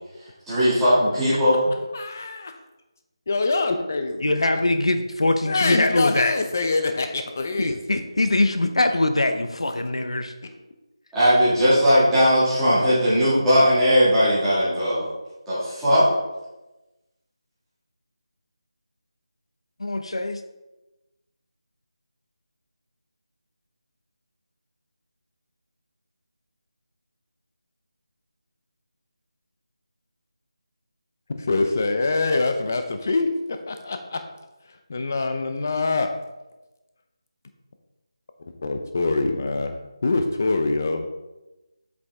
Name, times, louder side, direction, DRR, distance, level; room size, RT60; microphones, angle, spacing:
voice 1, 0.5-1.6 11.1-15.1 15.5-16.1, equal, 5° right, -15 dB, 2.0 m, -18 dB
voice 2, 1.9-2.6 3.3-4.6 5.5-8.0 8.9-9.0 10.4-10.5 31.3-34.3 34.7-36.1 38.4-41.0, left 3 dB, 30° left, 7 dB, 0.6 m, -25 dB
voice 3, 4.2-6.3 7.6-10.3 19.8-20.4, left 2 dB, 85° left, 7 dB, 0.8 m, -22 dB
8.1 x 5.1 x 3.6 m, 1.0 s
figure-of-eight pair, 175°, 3 cm